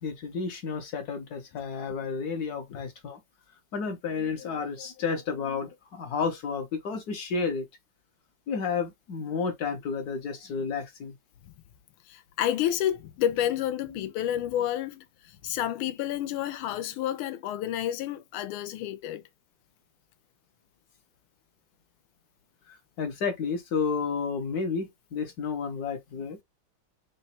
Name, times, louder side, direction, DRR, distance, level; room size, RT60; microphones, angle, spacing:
voice 1, 0.0-3.2 3.7-7.7 8.5-11.1 22.7-26.4, left 5 dB, 60° left, 1.1 m, -31 dB
voice 2, 12.1-15.0 15.4-19.2, left 11 dB, 85° left, 1.5 m, -29 dB
3.9 x 2.2 x 4.1 m
omnidirectional pair, 2.3 m